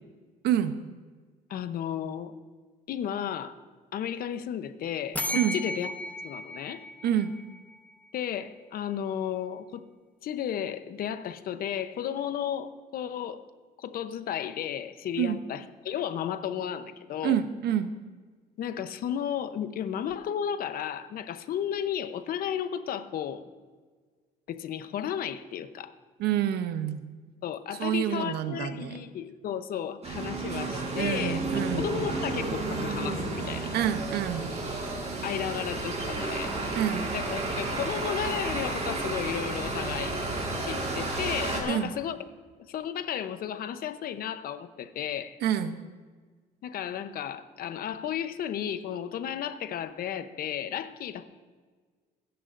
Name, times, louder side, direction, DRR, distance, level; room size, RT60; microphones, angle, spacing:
voice 1, 1.5-2.3 2.9-3.6 3.9-5.9 6.2-6.8 8.1-9.8 10.2-13.4 13.8-17.4 18.6-23.4 24.5-25.9 27.4-33.7 35.2-36.5 37.1-40.2 40.6-42.2 42.7-45.4 46.6-51.3, left 9 dB, 60° left, 11 dB, 0.9 m, -33 dB
sound 1, 5.2-7.9, left 1 dB, 10° left, 0.9 m, -35 dB
voice 2, 17.2-17.9 26.2-27.0 27.8-29.0 31.0-31.9 33.7-34.6 36.7-37.1 41.7-41.9 45.4-45.8, right 10 dB, 75° right, 10 dB, 0.9 m, -27 dB
sound 2, 30.0-41.6, right 2 dB, 40° right, 4.4 m, -32 dB
28.0 x 10.0 x 2.6 m, 1.5 s
cardioid pair, 110°, 17 cm